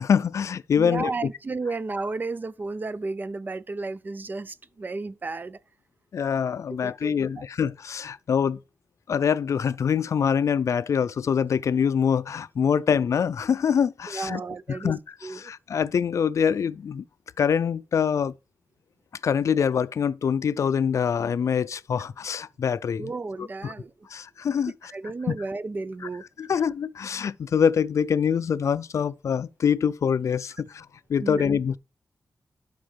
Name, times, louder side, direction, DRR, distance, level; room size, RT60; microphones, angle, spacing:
voice 1, 0.0-1.1 6.1-8.6 9.1-14.4 14.7-17.0 17.4-18.3 19.2-23.1 23.4-23.7 24.1-24.7 26.4-31.8, left 7 dB, 70° left, 0.4 m, -25 dB
voice 2, 0.8-5.6 6.7-7.4 14.1-14.9 15.2-15.5 23.0-23.9 24.9-26.2 31.2-31.5, right 3 dB, 35° right, 0.5 m, -33 dB
11.5 x 5.3 x 3.3 m
wide cardioid pair, 125°, 5 cm